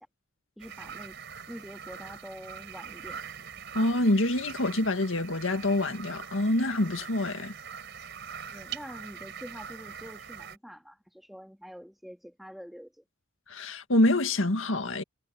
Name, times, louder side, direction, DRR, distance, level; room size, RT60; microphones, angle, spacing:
voice 1, 0.6-1.2 1.5-3.2 8.5-13.0, equal, ahead, 2.7 m, -46 dB
sound 1, 0.6-10.6, right 7 dB, 60° right, 4.4 m, -43 dB
voice 2, 3.7-7.5 13.5-15.0, left 1 dB, 75° left, 1.9 m, -26 dB
head